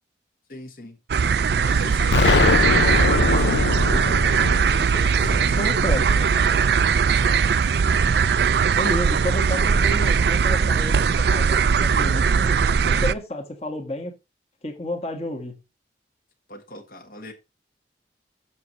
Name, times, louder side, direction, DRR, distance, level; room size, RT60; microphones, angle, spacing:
voice 1, 0.5-1.0 1.6-3.6 4.7-7.5 16.5-17.3, left 1 dB, 55° left, 1.4 m, -39 dB
sound 1, 1.1-13.1, right 6 dB, 65° right, 0.4 m, -20 dB
Explosion, 2.1-7.0, left 4 dB, 75° left, 0.5 m, -23 dB
voice 2, 5.6-6.0 8.7-14.2 14.6-15.6, left 1 dB, 35° left, 1.5 m, -31 dB
7.2 x 6.1 x 4.1 m
head